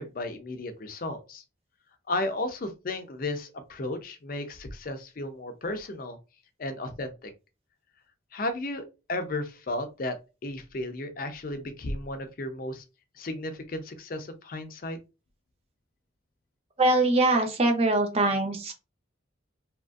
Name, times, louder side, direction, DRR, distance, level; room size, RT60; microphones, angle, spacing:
voice 1, 0.0-1.4 2.1-6.2 6.6-7.3 8.3-10.2 10.4-12.8 13.1-15.0, left 2 dB, 45° left, 0.5 m, -34 dB
voice 2, 16.8-18.7, right 2 dB, 30° right, 0.5 m, -23 dB
2.8 x 2.5 x 2.3 m
head